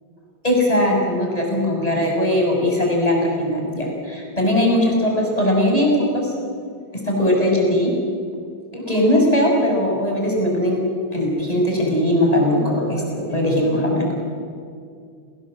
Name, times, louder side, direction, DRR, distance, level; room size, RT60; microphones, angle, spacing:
voice 1, 0.4-3.8 4.4-6.3 7.0-7.9 8.7-10.8 11.1-14.1, left 1 dB, 20° left, -1 dB, 6.3 m, -19 dB
30.0 x 19.5 x 7.7 m, 2.3 s
omnidirectional pair, 2.1 m